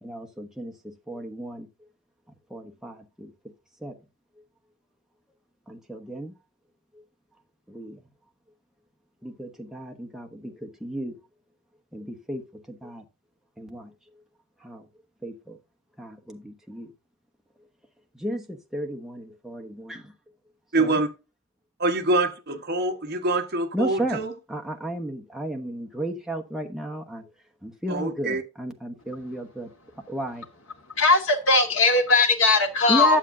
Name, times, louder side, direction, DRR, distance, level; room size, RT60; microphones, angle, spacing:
voice 1, 0.0-1.7 2.5-3.3 3.8-4.0 5.7-6.3 7.7-8.0 9.2-11.2 11.9-13.0 13.6-13.9 14.6-14.9 15.2-15.6 16.0-16.9 18.1-20.1 20.8-21.0 23.7-24.2 24.5-27.2 27.6-29.7 30.1-30.5 32.9-33.2, right 1 dB, ahead, 1.1 m, -33 dB
voice 2, 20.7-21.1 21.8-24.3 27.9-28.4, right 2 dB, 45° right, 1.2 m, -25 dB
voice 3, 31.0-33.2, left 3 dB, 65° left, 1.9 m, -19 dB
9.8 x 7.3 x 2.6 m
head